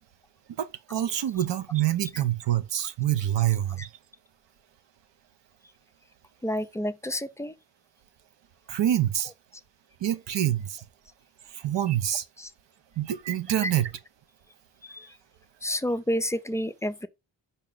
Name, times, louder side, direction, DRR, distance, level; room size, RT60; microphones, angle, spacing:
voice 1, 0.6-3.9 8.7-9.3 10.0-10.8 11.5-12.3 13.0-13.9, right 12 dB, 60° right, 0.7 m, -26 dB
voice 2, 6.4-7.5 12.4-12.5 13.6-13.7 14.8-15.2 15.6-17.1, equal, 5° left, 0.4 m, -30 dB
4.7 x 2.8 x 3.7 m
supercardioid pair, 40°, 50 cm